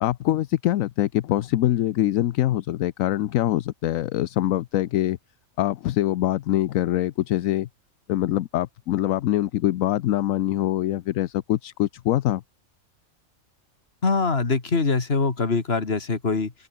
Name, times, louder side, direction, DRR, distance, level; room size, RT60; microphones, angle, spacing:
voice 1, 0.0-5.2 5.6-7.7 8.1-12.4, left 13 dB, 75° left, 1.0 m, -24 dB
voice 2, 14.0-16.5, left 4 dB, 45° left, 2.4 m, -23 dB
open air
omnidirectional pair, 1.4 m